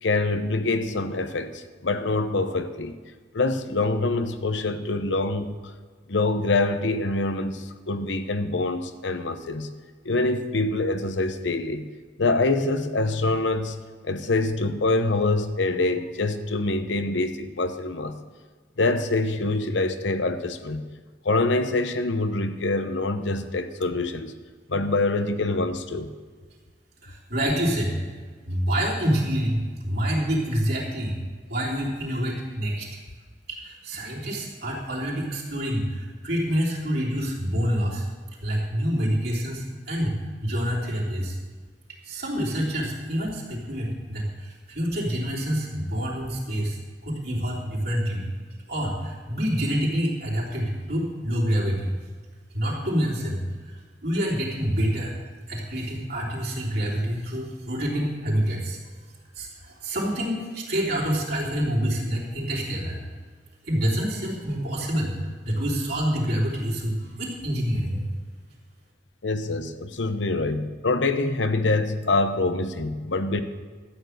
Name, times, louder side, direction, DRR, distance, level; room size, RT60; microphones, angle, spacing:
voice 1, 0.0-3.0 3.3-5.6 6.1-9.7 10.0-11.8 12.2-13.8 14.0-18.2 18.8-20.9 21.2-24.3 24.7-26.1 69.2-73.4, left 2 dB, 85° left, 10 dB, 0.9 m, -25 dB
voice 2, 27.0-28.0 28.5-31.1 31.5-32.9 33.5-38.0 38.4-41.4 42.0-46.8 47.0-48.2 48.7-51.9 52.5-55.1 55.5-58.8 59.4-63.0 63.7-65.1 65.4-68.0, equal, 60° right, -3 dB, 3.5 m, -27 dB
13.0 x 9.3 x 6.5 m, 1.5 s
head